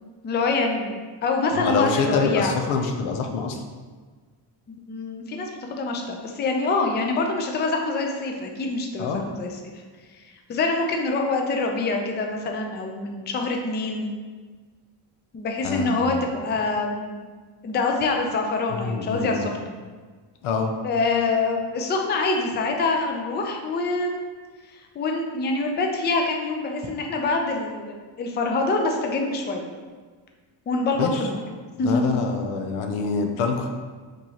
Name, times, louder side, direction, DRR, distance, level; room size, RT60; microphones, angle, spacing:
voice 1, 0.2-2.5 4.7-9.7 10.5-14.1 15.3-17.3 17.6-19.7 20.8-24.3 25.0-29.6 30.7-31.4 31.8-32.2, left 3 dB, 25° left, 2 dB, 0.4 m, -25 dB
voice 2, 1.5-3.6 9.0-9.3 15.6-16.2 18.7-19.5 20.4-20.7 31.0-31.2 31.8-33.7, left 4 dB, 85° left, 4 dB, 0.6 m, -26 dB
4.3 x 3.1 x 2.8 m, 1.5 s
cardioid pair, 105°, 48 cm